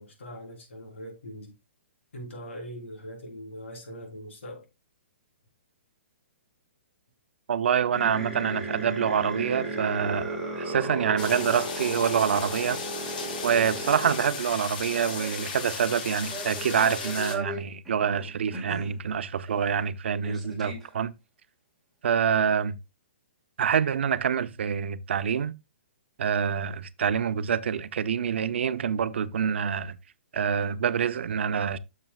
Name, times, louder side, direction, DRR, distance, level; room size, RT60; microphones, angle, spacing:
voice 1, 0.0-1.5 2.1-4.6, equal, 90° left, 3.7 m, -41 dB
voice 2, 7.5-12.8 13.4-21.1 22.0-22.8 23.6-25.5 26.2-30.0 30.3-31.8, right 7 dB, 70° right, 0.6 m, -26 dB
sound 1, 7.9-14.4 14.9-15.5 16.2-18.9 19.5-19.6 19.8-19.9 20.2-20.9, right 1 dB, ahead, 1.9 m, -36 dB
sound 2, 11.2-17.4, left 5 dB, 45° left, 1.5 m, -36 dB
9.0 x 6.7 x 2.4 m
hypercardioid pair, 170°, 6 cm